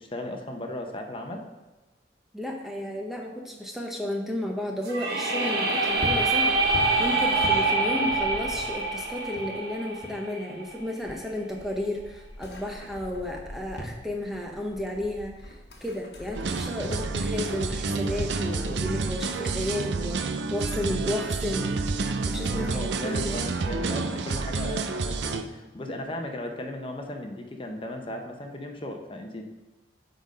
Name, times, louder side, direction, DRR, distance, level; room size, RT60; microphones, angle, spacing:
voice 1, 0.0-1.4 22.5-29.4, left 1 dB, 30° left, 3 dB, 0.8 m, -36 dB
voice 2, 2.3-20.2 20.5-21.7 22.3-22.8 23.0-23.4 25.8-25.9, left 1 dB, ahead, 0 dB, 0.7 m, -33 dB
sound 1, 4.8-10.7, right 3 dB, 60° right, 1.3 m, -25 dB
sound 2, 5.9-10.3 10.5-21.3, equal, 65° left, 1.2 m, -42 dB
sound 3, 16.3-25.4, right 3 dB, 80° right, 0.6 m, -29 dB
8.8 x 4.0 x 5.3 m, 1.1 s
head